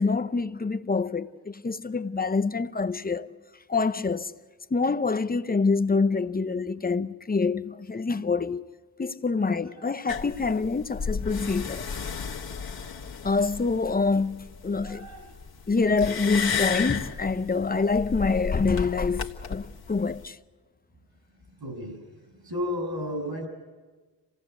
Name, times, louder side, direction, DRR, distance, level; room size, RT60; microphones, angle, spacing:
voice 1, 0.0-3.3 3.7-4.3 4.7-8.7 9.0-11.8 13.2-15.1 15.7-20.4, left 4 dB, 20° left, 0.7 m, -26 dB
voice 2, 9.6-9.9 14.8-15.3 21.6-22.0 22.3-23.5, left 1 dB, 65° right, 7.0 m, -34 dB
sound 1, 10.1-20.3, left 6 dB, 60° left, 1.7 m, -34 dB
27.0 x 17.0 x 8.1 m
cardioid pair, 85°, 42 cm